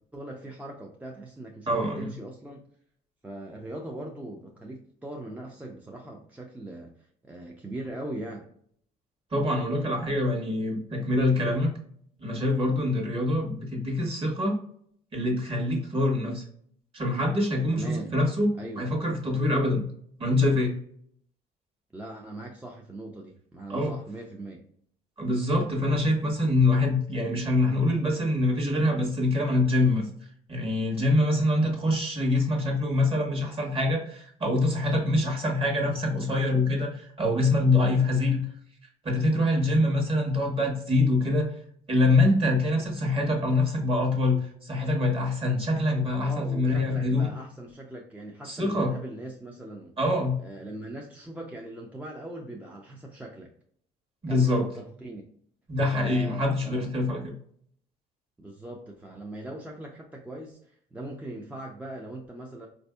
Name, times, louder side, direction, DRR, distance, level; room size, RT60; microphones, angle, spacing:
voice 1, 0.1-2.7 3.2-8.5 17.7-18.1 18.6-18.9 21.9-24.6 46.2-50.0 50.4-53.5 54.3-55.2 55.9-56.9 58.4-62.7, right 1 dB, 10° right, 0 dB, 0.4 m, -40 dB
voice 2, 1.7-2.1 9.3-11.7 12.2-14.6 15.1-16.4 16.9-19.8 20.2-20.8 23.7-23.9 25.2-30.0 30.5-38.4 39.0-41.5 41.9-47.3 48.4-48.9 50.0-50.4 54.2-54.7 55.7-57.3, left 2 dB, 35° right, 1 dB, 1.2 m, -25 dB
4.1 x 2.6 x 2.2 m, 0.64 s
cardioid pair, 110°, 17 cm